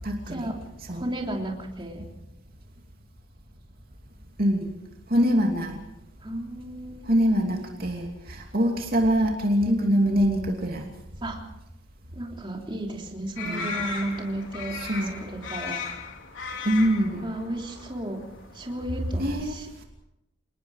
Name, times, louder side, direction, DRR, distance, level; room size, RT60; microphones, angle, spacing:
voice 1, 0.0-1.1 4.4-4.7 5.1-5.8 7.0-10.9 13.4-13.9 14.7-15.2 16.6-17.3 19.2-19.8, equal, 50° right, 1 dB, 2.9 m, -24 dB
voice 2, 0.9-2.0 6.2-7.5 9.6-9.9 11.2-11.4 12.1-14.7 15.2-15.8 17.2-18.2 18.5-19.8, right 1 dB, 25° right, 0 dB, 3.3 m, -33 dB
sound 1, 13.4-19.3, left 4 dB, 70° left, 3.7 m, -37 dB
27.5 x 20.0 x 5.0 m, 0.87 s
head